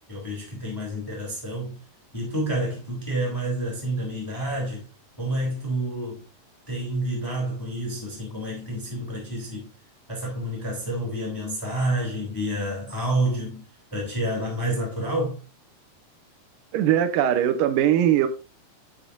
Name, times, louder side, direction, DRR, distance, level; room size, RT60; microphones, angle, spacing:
voice 1, 0.1-1.8 2.1-4.9 5.2-6.2 6.7-9.7 10.1-13.7 13.9-15.4, right 1 dB, 5° left, 2.4 m, -29 dB
voice 2, 16.7-18.3, right 10 dB, 80° right, 2.5 m, -20 dB
11.0 x 5.8 x 2.6 m
omnidirectional pair, 3.9 m